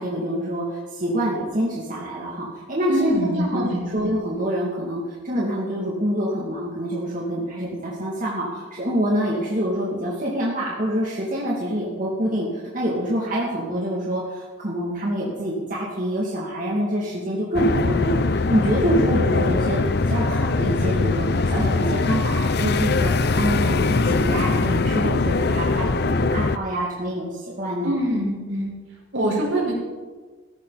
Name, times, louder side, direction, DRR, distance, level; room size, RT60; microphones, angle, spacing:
voice 1, 0.0-3.6 3.9-12.5 12.7-28.0, equal, 40° right, -5 dB, 2.6 m, -26 dB
voice 2, 2.9-4.1 27.8-28.7 29.1-29.7, right 1 dB, 75° right, -2 dB, 5.0 m, -24 dB
sound 1, 17.5-26.6, left 3 dB, 55° left, 0.6 m, -21 dB
16.5 x 14.5 x 4.2 m, 1.4 s
head